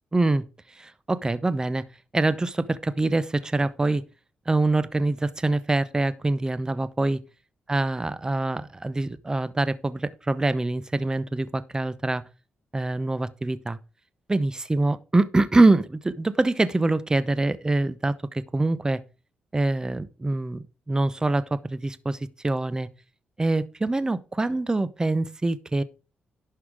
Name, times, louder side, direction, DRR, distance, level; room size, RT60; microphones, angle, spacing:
voice 1, 0.1-0.4 0.7-1.8 2.1-4.0 4.5-7.2 7.7-12.2 12.7-13.8 14.3-19.0 19.5-22.2 22.4-22.9 23.4-25.8, right 2 dB, 20° right, 0.8 m, -24 dB
11.0 x 5.7 x 4.7 m
cardioid pair, 80°, 4 cm